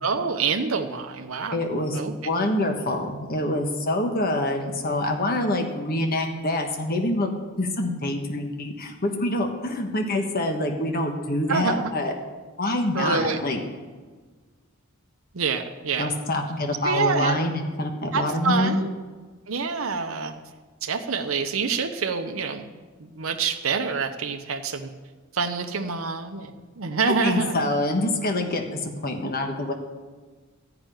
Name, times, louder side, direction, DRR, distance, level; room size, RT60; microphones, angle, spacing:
voice 1, 0.0-1.6 1.9-2.3 11.5-11.9 12.9-13.4 15.3-16.1 16.8-17.4 18.1-18.9 19.5-20.3 20.8-22.6 23.0-24.9 25.3-26.5 26.8-27.7, right 5 dB, 80° right, 5 dB, 0.8 m, -26 dB
voice 2, 1.5-12.1 12.6-13.6 16.0-18.8 27.0-29.7, left 1 dB, 45° left, 3 dB, 1.3 m, -26 dB
13.0 x 5.9 x 9.1 m, 1.4 s
head